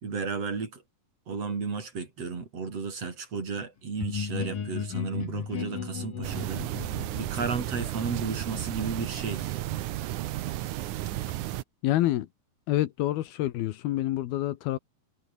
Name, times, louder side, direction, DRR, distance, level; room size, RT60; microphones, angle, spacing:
voice 1, 0.0-0.8 1.3-9.5, right 5 dB, 40° right, 4.5 m, -33 dB
sound 1, 4.0-9.6, left 7 dB, 60° left, 5.0 m, -36 dB
sound 2, 6.2-11.6, right 14 dB, 70° right, 2.0 m, -33 dB
voice 2, 11.8-12.3 12.7-14.8, left 15 dB, 80° left, 3.0 m, -27 dB
omnidirectional pair, 4.4 m